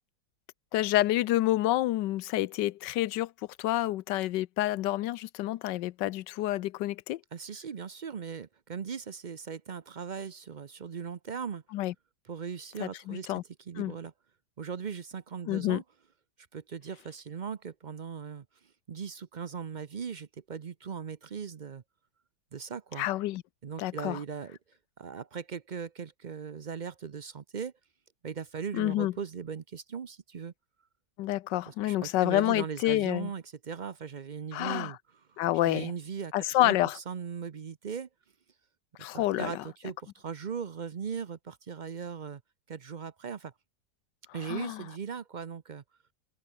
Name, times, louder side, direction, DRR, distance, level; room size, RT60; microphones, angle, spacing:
voice 1, 0.7-3.3 3.6-7.2 11.7-11.9 12.8-13.4 13.8-13.9 15.5-15.8 23.0-23.4 23.8-24.2 28.7-29.1 31.2-33.3 34.5-34.9 35.4-35.9 36.3-37.0 39.0-39.6 44.5-44.8, left 15 dB, 85° left, 1.3 m, -28 dB
voice 2, 7.3-11.6 12.2-13.3 13.7-14.1 14.6-15.8 16.5-18.4 18.9-21.8 22.5-23.1 23.6-24.6 25.0-27.7 28.2-30.5 31.7-35.0 35.6-38.1 39.1-42.4 42.7-43.5 44.3-45.8, right 6 dB, 60° right, 0.4 m, -39 dB
open air
omnidirectional pair, 1.9 m